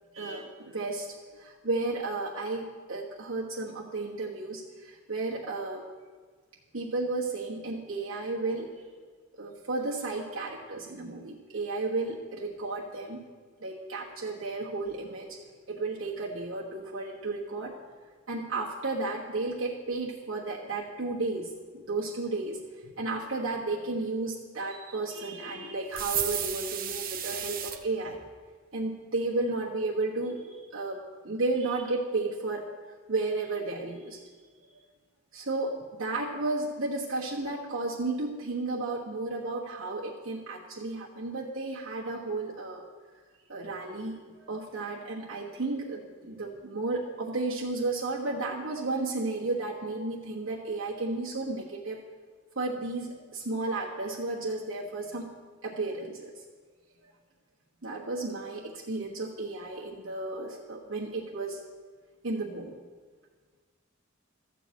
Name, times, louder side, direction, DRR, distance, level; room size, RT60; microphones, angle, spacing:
voice 1, 0.1-1.1 1.3-5.8 6.7-8.8 9.4-13.2 13.6-15.4 15.7-17.8 18.3-28.2 28.7-32.6 33.1-34.2 35.3-42.8 43.5-52.0 52.5-55.3 55.6-56.4 57.8-61.6 62.2-62.7, right 2 dB, 90° right, -5 dB, 1.4 m, -33 dB
sound 1, 25.9-27.8, right 9 dB, 45° right, 0.8 m, -32 dB
13.0 x 4.8 x 8.1 m, 1.5 s
head